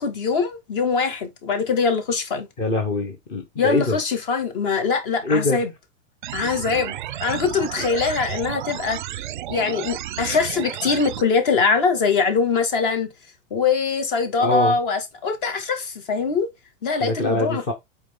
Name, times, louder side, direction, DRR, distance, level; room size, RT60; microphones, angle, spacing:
voice 1, 0.0-2.5 3.6-5.7 6.3-7.0 7.2-9.0 9.5-13.1 13.5-16.5 16.8-17.6, left 5 dB, 40° left, 2.1 m, -22 dB
voice 2, 2.6-4.0 5.2-5.6 7.8-7.9 14.4-14.7 17.0-17.7, left 2 dB, 15° left, 0.6 m, -23 dB
sound 1, 6.2-11.2, right 13 dB, 40° right, 0.6 m, -32 dB
8.3 x 4.6 x 3.7 m
supercardioid pair, 175°, 39 cm